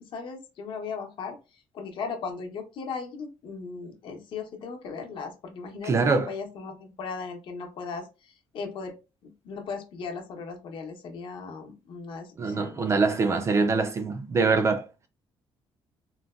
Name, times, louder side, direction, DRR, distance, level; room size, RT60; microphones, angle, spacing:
voice 1, 0.1-8.9 9.2-13.1, left 5 dB, 55° left, 0.7 m, -37 dB
voice 2, 5.8-6.3 12.4-14.9, right 4 dB, 30° right, 0.3 m, -24 dB
3.8 x 2.1 x 2.3 m
cardioid pair, 170°, 10 cm